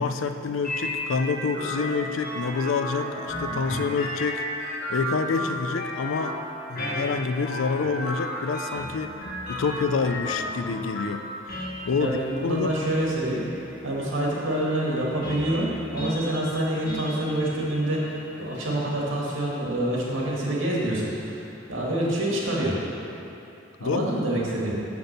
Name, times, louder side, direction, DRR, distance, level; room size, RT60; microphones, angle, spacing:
voice 1, 0.0-4.4 4.9-6.3 6.7-9.1 9.5-12.7 23.8-24.1, left 5 dB, 85° left, 9 dB, 0.5 m, -27 dB
sound 1, 0.6-19.3, equal, 50° left, 1.4 m, -34 dB
voice 2, 12.0-22.8 23.8-24.7, right 1 dB, 80° right, -4 dB, 2.0 m, -27 dB
6.9 x 6.0 x 6.8 m, 2.9 s
head